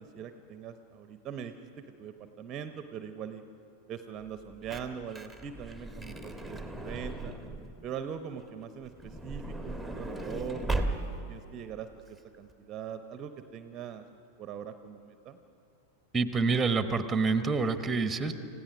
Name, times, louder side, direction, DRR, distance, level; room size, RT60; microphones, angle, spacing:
voice 1, 0.0-1.5 2.0-3.4 3.9-7.3 7.8-10.8 11.3-14.0 14.4-15.4, right 8 dB, 30° right, 9 dB, 0.8 m, -41 dB
Truck / Door, 4.3-7.8 8.8-11.4 12.1-12.2 12.3-12.5, right 2 dB, 5° left, 1.5 m, -37 dB
voice 2, 16.1-18.3, right 4 dB, 15° right, 10 dB, 1.1 m, -27 dB
29.0 x 16.0 x 6.2 m, 2.7 s
figure-of-eight pair, 90°, 0 cm